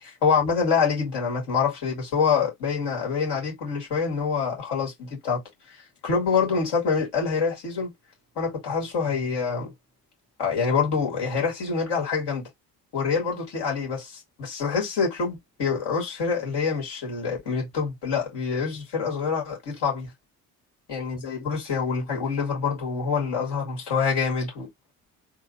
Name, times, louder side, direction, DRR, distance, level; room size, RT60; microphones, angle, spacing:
voice 1, 0.0-5.4 6.0-7.9 8.4-9.7 10.4-12.4 12.9-20.1 20.9-24.7, left 5 dB, 60° left, 1.9 m, -26 dB
3.7 x 2.0 x 4.0 m
figure-of-eight pair, 45°, 46 cm